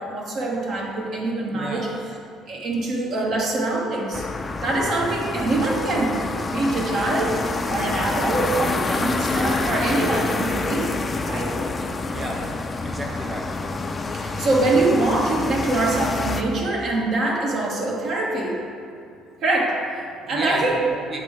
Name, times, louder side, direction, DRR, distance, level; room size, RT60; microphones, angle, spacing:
voice 1, 0.0-1.9 2.5-4.3 4.6-7.4 7.7-11.0 11.2-11.5 14.1-18.6 19.4-20.8, right 2 dB, 60° right, -2 dB, 1.2 m, -24 dB
voice 2, 1.5-1.9 12.1-12.5 12.8-13.5 20.2-21.2, right 1 dB, 35° right, 0 dB, 1.1 m, -32 dB
sound 1, 4.1-16.4, left 3 dB, 30° left, 0.4 m, -27 dB
8.1 x 3.3 x 4.8 m, 2.6 s
supercardioid pair, 85°, 0 cm